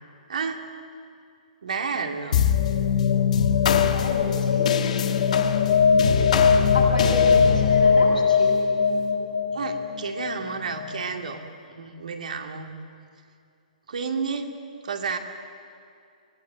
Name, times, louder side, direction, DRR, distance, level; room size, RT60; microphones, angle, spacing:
voice 1, 0.3-0.6 1.6-2.5 9.5-11.4 11.7-12.7 13.9-14.5 14.8-15.2, right 5 dB, 70° right, 3 dB, 2.5 m, -31 dB
sound 1, 2.3-11.0, left 6 dB, 60° left, 1.6 m, -20 dB
voice 2, 3.7-4.7 6.7-8.5, left 1 dB, 85° left, -7 dB, 7.7 m, -31 dB
24.5 x 19.0 x 9.1 m, 2.4 s
figure-of-eight pair, 125°, 4 cm